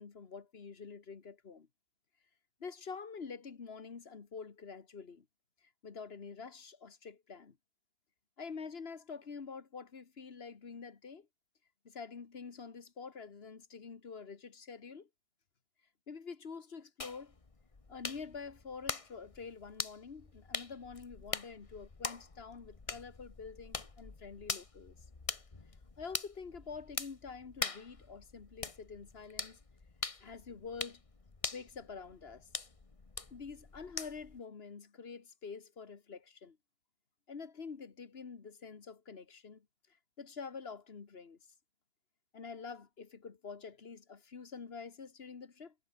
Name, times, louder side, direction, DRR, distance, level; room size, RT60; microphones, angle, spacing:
voice 1, 0.0-1.7 2.6-5.3 5.6-7.6 8.4-11.3 11.9-15.1 16.1-17.3 17.9-24.9 26.0-29.6 30.2-31.0 31.5-32.5 33.3-36.6 37.3-39.7 40.2-41.4 42.3-45.7, left 5 dB, 60° left, 1.7 m, -47 dB
sound 1, 17.0-34.4, left 3 dB, 30° left, 1.4 m, -43 dB
omnidirectional pair, 1.1 m